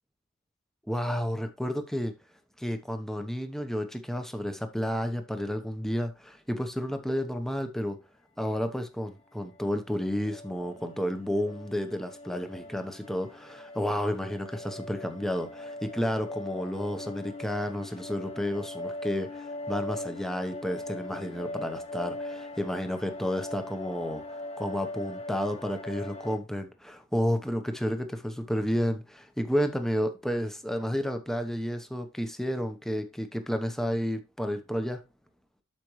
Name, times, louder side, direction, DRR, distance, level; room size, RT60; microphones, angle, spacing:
voice 1, 0.9-2.1 2.6-8.0 8.4-35.0, equal, ahead, 1.0 m, -31 dB
sound 1, 9.5-26.4, left 1 dB, 30° left, 0.9 m, -41 dB
12.0 x 5.1 x 3.1 m
head